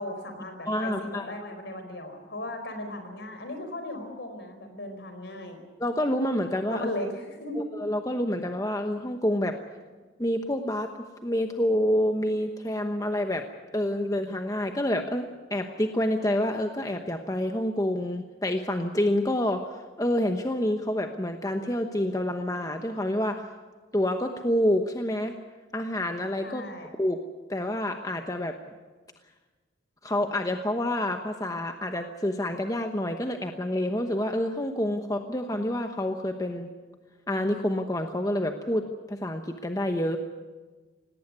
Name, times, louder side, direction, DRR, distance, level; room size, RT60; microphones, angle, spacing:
voice 1, 0.0-5.6 6.7-7.6 26.4-26.9, left 1 dB, 65° left, 6 dB, 4.5 m, -37 dB
voice 2, 0.7-1.3 5.8-6.9 7.6-9.6 10.2-13.4 13.7-23.5 23.9-25.3 25.7-26.6 27.0-27.2 27.5-28.6 30.0-36.7 37.3-40.2, left 1 dB, 20° left, 5 dB, 1.0 m, -28 dB
18.5 x 18.0 x 9.7 m, 1.3 s
head